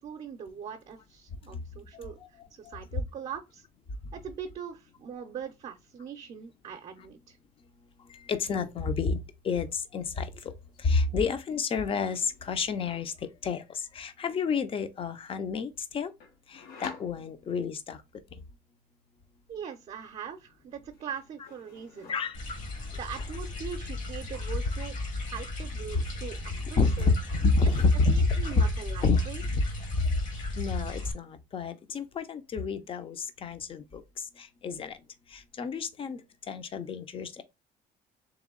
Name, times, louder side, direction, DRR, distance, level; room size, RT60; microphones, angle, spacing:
voice 1, 0.0-3.6 4.1-7.4 19.5-22.1 22.9-24.9 25.3-26.4 26.7-27.1 28.1-29.4, right 7 dB, 45° right, 0.6 m, -41 dB
voice 2, 8.0-9.2 9.4-10.5 10.8-16.1 16.5-18.0 22.1-22.4 25.9-26.0 26.8-28.1 28.6-28.7 29.0-29.2 29.5-29.6 30.0-30.2 30.6-35.0 35.3-36.2 36.5-37.4, left 4 dB, 35° left, 0.6 m, -29 dB
sound 1, 9.6-9.8 10.0-10.8 11.8-13.2 16.2-17.8 20.0-20.6 20.9-22.6, left 5 dB, 80° left, 1.1 m, -50 dB
sound 2, 22.3-31.1, left 2 dB, 55° left, 1.4 m, -36 dB
3.4 x 3.1 x 3.7 m
cardioid pair, 125°, 15 cm